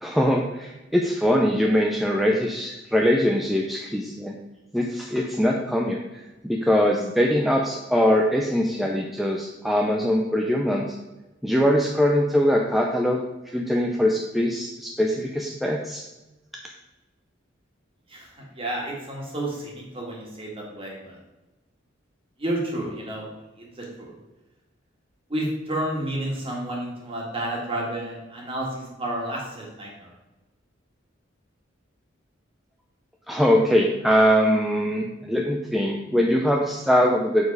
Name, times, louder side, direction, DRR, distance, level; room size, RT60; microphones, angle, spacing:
voice 1, 0.0-4.4 4.7-6.0 6.4-10.9 11.4-13.2 13.5-16.0 33.3-37.5, equal, ahead, 0 dB, 0.4 m, -22 dB
voice 2, 18.1-21.2 22.4-23.3 23.6-24.1 25.3-30.1, right 1 dB, 30° right, -2 dB, 1.8 m, -31 dB
7.1 x 4.3 x 4.7 m, 1.0 s
head